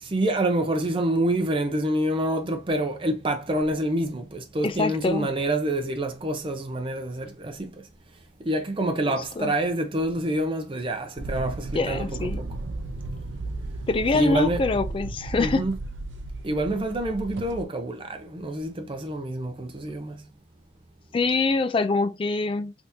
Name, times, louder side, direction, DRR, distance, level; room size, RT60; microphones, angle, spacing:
voice 1, 0.0-7.8 8.4-12.5 14.1-14.6 15.4-15.8 16.4-20.2, right 1 dB, 25° right, 0.6 m, -27 dB
voice 2, 4.6-5.3 9.1-9.5 11.7-12.4 13.9-15.7 21.1-22.7, left 3 dB, 25° left, 0.3 m, -25 dB
sound 1, 11.2-17.6, right 2 dB, 75° right, 0.5 m, -34 dB
3.5 x 2.9 x 2.6 m
head